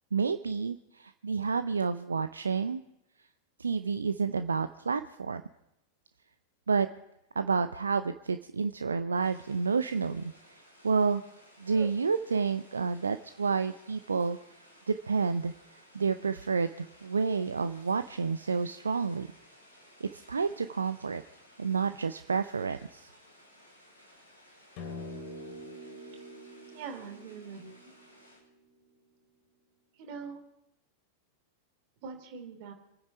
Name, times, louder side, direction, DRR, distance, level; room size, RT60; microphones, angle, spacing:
voice 1, 0.1-2.8 3.6-5.4 6.7-6.9 7.4-10.3 10.8-11.2 11.6-14.4 14.9-15.5 15.9-19.3 20.0-21.2 21.6-23.1, right 5 dB, 75° right, 11 dB, 0.6 m, -29 dB
sound 1, 9.2-28.4, equal, 85° left, 5.7 m, -58 dB
sound 2, 24.8-29.3, left 1 dB, 45° left, 2.5 m, -46 dB
voice 2, 26.7-27.9 30.0-30.4 32.0-32.7, right 6 dB, 45° right, 6 dB, 2.9 m, -43 dB
27.0 x 9.6 x 5.0 m, 0.85 s
figure-of-eight pair, 90°, 0 cm